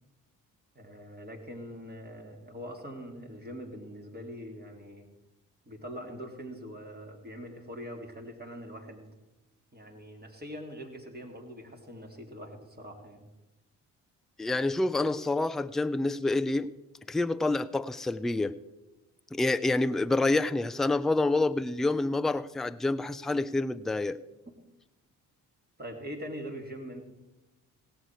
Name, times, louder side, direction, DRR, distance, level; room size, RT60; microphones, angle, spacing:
voice 1, 0.7-5.1 5.7-9.1 9.7-13.3 25.8-27.0, equal, 20° right, 2 dB, 2.7 m, -43 dB
voice 2, 14.4-16.7 17.1-18.5 19.3-24.2, left 2 dB, ahead, 13 dB, 0.4 m, -27 dB
17.0 x 7.8 x 4.6 m, 1.0 s
hypercardioid pair, 40°, 45 cm